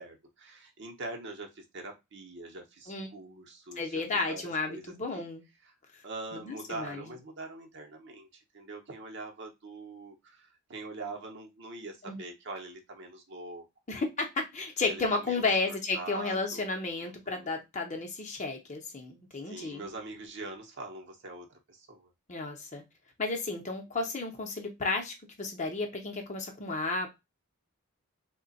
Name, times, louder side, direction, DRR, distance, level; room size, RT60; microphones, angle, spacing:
voice 1, 0.0-5.3 5.6-5.7 6.0-8.3 8.5-14.1 14.9-16.7 16.9-17.5 19.4-22.1, right 2 dB, 55° right, 2 dB, 0.8 m, -43 dB
voice 2, 3.8-5.4 6.3-7.0 12.0-12.2 13.9-19.9 22.3-22.8 23.2-27.1, left 3 dB, 35° left, 3 dB, 0.7 m, -33 dB
3.2 x 2.2 x 3.9 m, 0.22 s
head